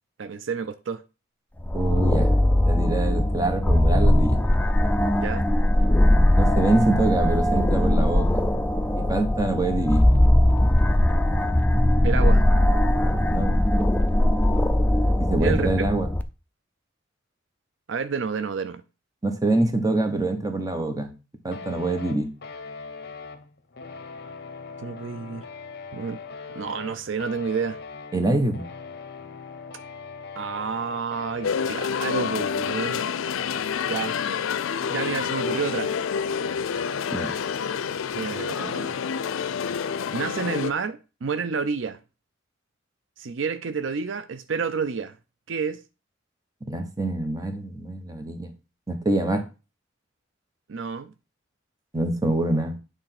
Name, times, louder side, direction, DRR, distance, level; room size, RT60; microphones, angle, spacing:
voice 1, 0.2-1.0 5.2-5.5 12.0-12.4 15.4-15.7 17.9-18.8 24.8-25.5 25.9-26.2 26.5-27.8 30.4-33.0 33.9-34.2 34.9-35.9 38.1-39.0 40.1-42.0 43.2-45.1 45.5-45.8 50.7-51.1, right 5 dB, 70° right, 0.5 m, -29 dB
sound 1, 1.6-16.2, left 1 dB, 10° left, 0.5 m, -20 dB
voice 2, 1.7-4.4 6.3-8.4 9.0-10.1 13.3-13.6 15.2-16.1 19.2-21.1 21.4-22.3 28.1-28.7 37.1-37.3 46.7-48.5 48.9-49.4 51.9-52.8, right 2 dB, 20° right, 1.2 m, -25 dB
sound 2, 21.5-40.7, left 4 dB, 55° left, 0.9 m, -41 dB
sound 3, 31.4-40.7, left 7 dB, 90° left, 0.4 m, -28 dB
8.9 x 3.5 x 5.9 m
head